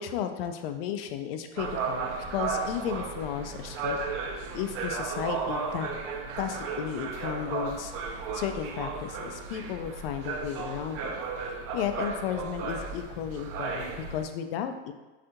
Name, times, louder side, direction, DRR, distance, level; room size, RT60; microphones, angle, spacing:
voice 1, 0.0-4.0 4.5-5.9 6.4-7.9 8.3-14.9, left 9 dB, 70° left, 7 dB, 0.4 m, -34 dB
sound 1, 1.6-14.2, right 4 dB, 50° right, 0.5 m, -34 dB
3.3 x 2.4 x 2.8 m, 1.2 s
hypercardioid pair, 100°, 30 cm